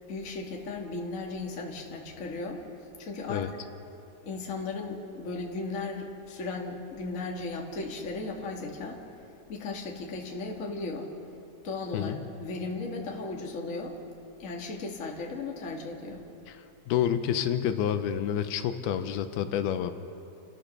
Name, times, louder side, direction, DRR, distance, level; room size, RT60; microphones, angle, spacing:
voice 1, 0.1-2.6 3.0-3.6 4.2-9.0 9.5-11.1 11.6-14.0 14.4-16.2, left 3 dB, 30° left, 0 dB, 1.4 m, -36 dB
voice 2, 16.9-19.9, left 9 dB, 80° left, 9 dB, 2.7 m, -28 dB
30.0 x 13.5 x 6.6 m, 2.7 s
omnidirectional pair, 4.5 m